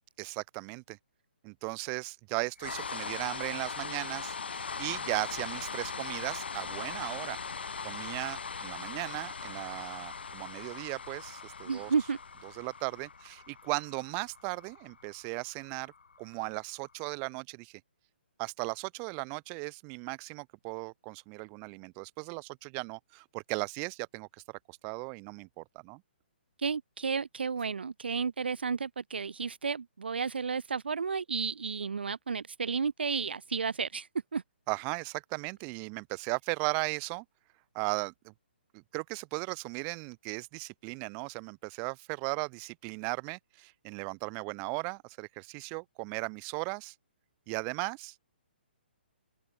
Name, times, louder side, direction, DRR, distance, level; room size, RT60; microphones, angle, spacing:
voice 1, 0.2-1.0 1.4-7.4 7.8-11.9 12.4-15.9 16.2-17.8 18.4-24.3 24.7-26.0 34.7-37.2 37.7-38.3 38.7-46.9 47.5-48.3, right 40 dB or more, 30° right, 3.4 m, -37 dB
sound 1, 2.6-16.7, left 5 dB, 70° left, 5.2 m, -40 dB
voice 2, 11.7-12.2 26.6-34.4, right 5 dB, 70° right, 1.0 m, -32 dB
open air
figure-of-eight pair, 130°, 6 cm